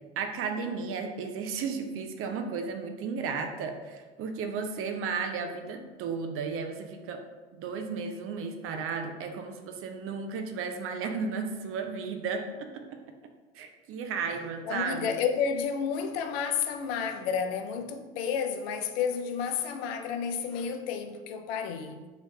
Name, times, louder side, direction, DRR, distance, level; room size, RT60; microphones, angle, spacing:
voice 1, 0.2-7.2 7.5-13.0 13.5-15.1, right 5 dB, 45° right, 0.5 m, -34 dB
voice 2, 14.6-22.0, left 6 dB, 70° left, 0.5 m, -31 dB
3.0 x 3.0 x 3.0 m
hypercardioid pair, 75°, 32 cm